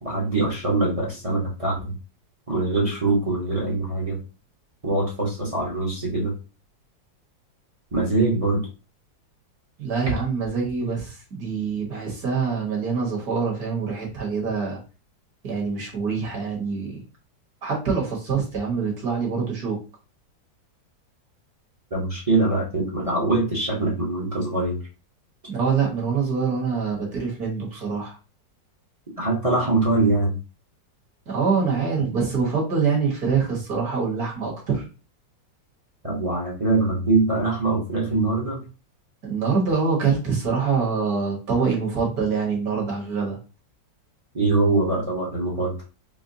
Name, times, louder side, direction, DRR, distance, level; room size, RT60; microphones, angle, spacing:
voice 1, 0.0-1.9 2.5-4.2 4.8-6.3 7.9-8.6 21.9-24.8 29.2-30.4 36.0-38.6 44.3-45.8, right 3 dB, 25° right, -4 dB, 0.8 m, -23 dB
voice 2, 9.8-14.8 15.4-17.0 17.6-19.8 25.5-28.2 31.3-34.8 39.2-43.4, right 5 dB, 55° right, -2 dB, 1.8 m, -25 dB
5.1 x 2.2 x 2.7 m, 0.32 s
omnidirectional pair, 2.0 m